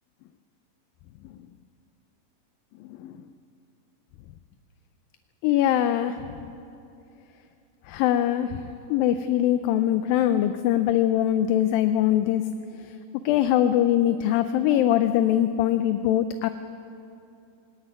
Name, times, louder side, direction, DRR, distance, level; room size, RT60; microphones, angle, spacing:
voice 1, 5.4-6.2 7.9-8.6 8.9-12.4 13.3-16.5, left 11 dB, 80° left, 9 dB, 2.3 m, -22 dB
20.0 x 18.0 x 9.7 m, 2.7 s
omnidirectional pair, 4.3 m